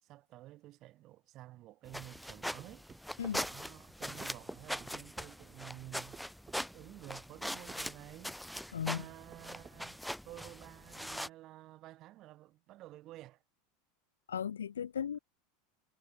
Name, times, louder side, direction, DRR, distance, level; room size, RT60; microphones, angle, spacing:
voice 1, 0.0-2.9 3.4-6.2 6.5-8.4 8.9-13.4, right 16 dB, 50° right, 6.5 m, -52 dB
sound 1, 1.9-11.3, equal, ahead, 2.0 m, -42 dB
sound 2, 2.6-3.4 4.2-5.0 6.1-6.6 7.7-7.9 9.0-9.8, right 6 dB, 25° right, 2.5 m, -53 dB
voice 2, 8.7-9.1 14.3-15.2, left 8 dB, 85° left, 1.2 m, -36 dB
hypercardioid pair, 90°, 0 cm